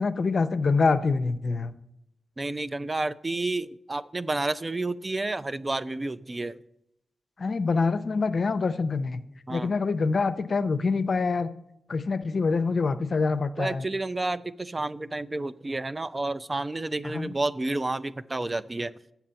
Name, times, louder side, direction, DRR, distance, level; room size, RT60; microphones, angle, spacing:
voice 1, 0.0-1.7 7.4-9.2 9.5-11.5 11.9-13.8 17.0-17.3, left 4 dB, 60° left, 11 dB, 0.5 m, -25 dB
voice 2, 2.4-6.6 9.5-9.7 13.6-18.9, right 2 dB, 35° right, 14 dB, 0.4 m, -30 dB
7.3 x 5.8 x 6.8 m, 0.79 s
supercardioid pair, 40°, 0 cm